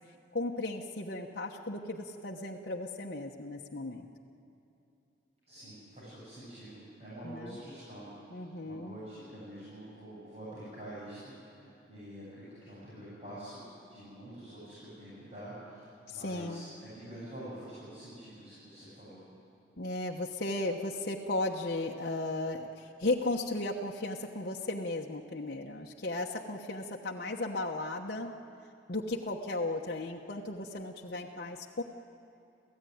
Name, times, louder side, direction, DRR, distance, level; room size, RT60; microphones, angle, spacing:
voice 1, 0.3-4.1 7.2-7.6 8.3-9.0 16.1-16.7 19.8-28.3 28.9-31.8, left 2 dB, 55° left, -1 dB, 1.1 m, -35 dB
voice 2, 5.5-19.3, right 1 dB, 35° right, -10 dB, 7.7 m, -47 dB
27.5 x 16.0 x 9.4 m, 2.8 s
head